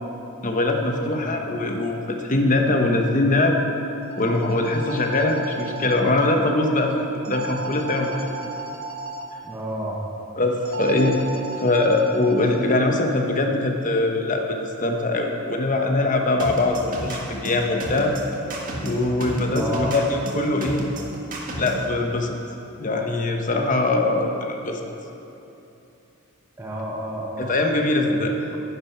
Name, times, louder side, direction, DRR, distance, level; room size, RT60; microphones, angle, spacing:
voice 1, 0.4-3.6 4.2-8.3 10.4-11.2 11.6-18.1 18.8-20.8 21.6-22.4 22.8-24.8 27.4-28.4, left 2 dB, 40° left, 3 dB, 1.1 m, -22 dB
sound 1, 4.0-6.0 7.2-9.2 10.7-12.6, right 3 dB, 60° right, 1.0 m, -35 dB
voice 2, 9.4-10.0 19.5-19.9 26.6-27.5 28.1-28.2, equal, 10° right, -5 dB, 1.1 m, -30 dB
sound 2, 16.4-21.9, right 1 dB, 40° right, 1.8 m, -31 dB
10.5 x 10.0 x 6.0 m, 2.9 s
head